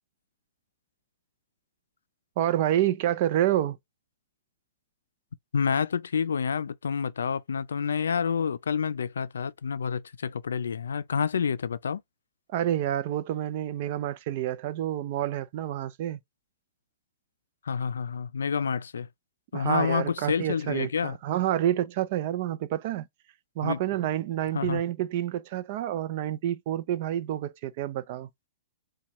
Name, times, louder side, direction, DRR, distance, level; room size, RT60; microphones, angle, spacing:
voice 1, 2.4-3.8 12.5-16.2 19.5-23.1 23.6-28.3, right 12 dB, 50° right, 0.5 m, -28 dB
voice 2, 5.5-12.0 17.6-19.1 19.5-21.2 23.6-23.8 24.5-24.8, left 6 dB, 90° left, 0.4 m, -28 dB
4.4 x 2.3 x 3.0 m
hypercardioid pair, 135°, 0 cm